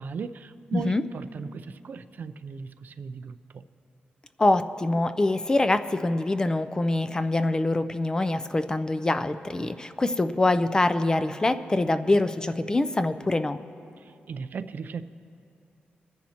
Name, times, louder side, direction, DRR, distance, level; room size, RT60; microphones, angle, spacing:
voice 1, 0.0-3.6 14.0-15.0, right 5 dB, 60° right, 12 dB, 0.4 m, -37 dB
voice 2, 4.4-13.6, left 2 dB, 20° left, 11 dB, 0.4 m, -24 dB
25.5 x 10.5 x 2.9 m, 2.5 s
wide cardioid pair, 115°, 4 cm